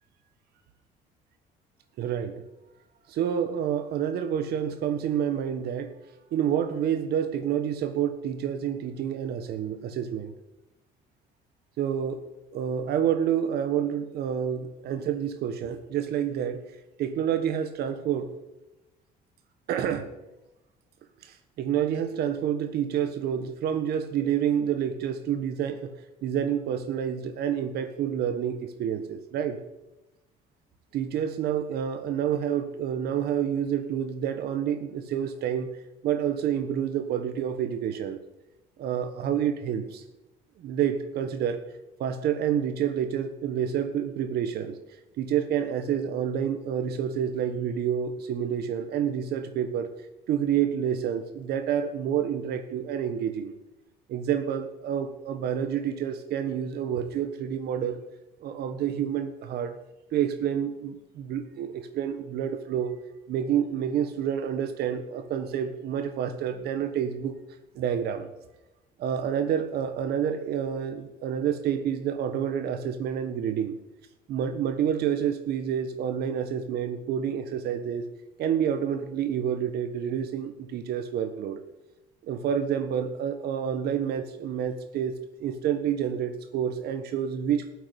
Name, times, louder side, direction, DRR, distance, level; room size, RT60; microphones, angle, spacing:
voice 1, 2.0-2.4 3.1-5.9 6.3-10.3 11.8-12.2 12.5-16.7 17.0-18.3 19.7-20.1 21.2-25.9 26.2-29.6 30.9-35.7 36.0-38.2 38.8-40.0 40.6-41.6 42.0-44.8 45.2-49.9 50.3-53.5 54.1-58.0 58.4-59.8 60.1-67.3 67.7-68.3 69.0-73.8 74.3-78.1 78.4-81.6 82.2-87.7, right 9 dB, 70° right, 9 dB, 1.4 m, -28 dB
13.5 x 8.2 x 10.0 m, 1.0 s
cardioid pair, 110°, 17 cm